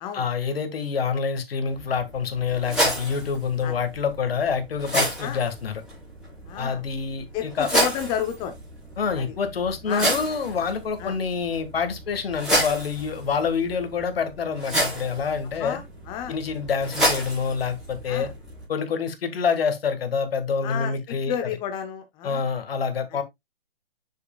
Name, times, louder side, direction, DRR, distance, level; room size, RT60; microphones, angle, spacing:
voice 1, 0.1-5.8 6.6-7.7 9.0-15.8 16.3-18.3 18.7-21.5 22.2-23.2, left 6 dB, 70° left, 1.8 m, -27 dB
sound 1, 1.7-18.7, equal, ahead, 4.7 m, -30 dB
voice 2, 6.5-6.8 7.3-8.5 9.9-10.0 11.0-11.1 15.6-16.4 18.1-18.3 20.6-22.4, left 9 dB, 15° left, 0.7 m, -31 dB
7.7 x 6.5 x 2.3 m
hypercardioid pair, 145°, 31 cm